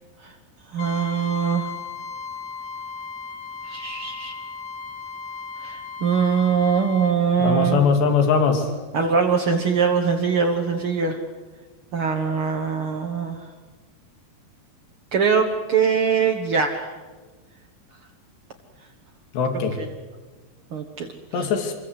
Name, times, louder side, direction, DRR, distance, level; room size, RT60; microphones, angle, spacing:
voice 1, 0.7-1.7 3.6-4.3 5.6-7.8 8.9-11.2 11.9-13.4 15.1-16.9 19.8-19.9 20.7-21.5, right 6 dB, 70° right, 2 dB, 1.2 m, -22 dB
Trumpet, 0.8-7.2, left 5 dB, 60° left, 1.2 m, -36 dB
voice 2, 7.4-8.7 19.3-19.8 21.3-21.7, left 5 dB, 75° left, 6 dB, 4.6 m, -21 dB
27.0 x 23.0 x 8.1 m, 1.3 s
omnidirectional pair, 4.9 m